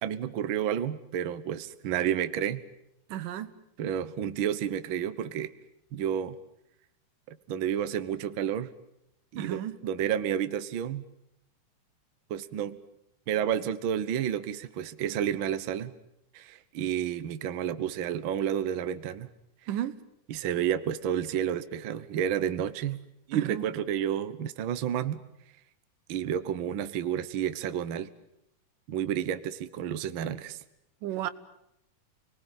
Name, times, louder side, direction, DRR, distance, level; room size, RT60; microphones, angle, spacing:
voice 1, 0.0-2.6 3.8-5.5 5.9-6.3 7.3-8.7 9.3-11.0 12.3-12.8 13.3-15.9 16.3-19.3 20.3-23.0 23.3-25.2 26.1-28.1 28.9-30.6, right 9 dB, 60° right, 1.4 m, -30 dB
voice 2, 3.1-3.5 9.4-9.8 19.7-20.0 23.3-23.6 31.0-31.3, right 12 dB, 85° right, 2.8 m, -33 dB
29.5 x 20.5 x 9.4 m
omnidirectional pair, 3.7 m